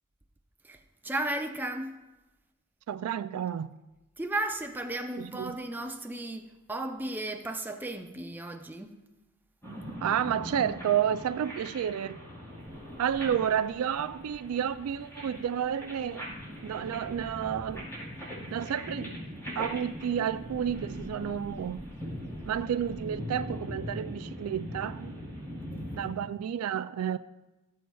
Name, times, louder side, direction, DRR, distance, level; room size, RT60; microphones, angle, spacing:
voice 1, 0.6-2.0 4.2-9.0, right 1 dB, 10° right, 0.5 m, -35 dB
voice 2, 2.9-3.7 5.2-5.6 10.0-12.2 13.0-16.3 16.6-17.9 18.5-19.2 19.6-21.9 22.4-25.2 25.9-27.2, right 9 dB, 75° right, 0.3 m, -31 dB
sound 1, 9.6-26.1, equal, 15° left, 3.3 m, -41 dB
sound 2, 12.6-18.1 18.6-23.1, right 1 dB, 50° right, 0.9 m, -54 dB
15.5 x 7.3 x 2.3 m
head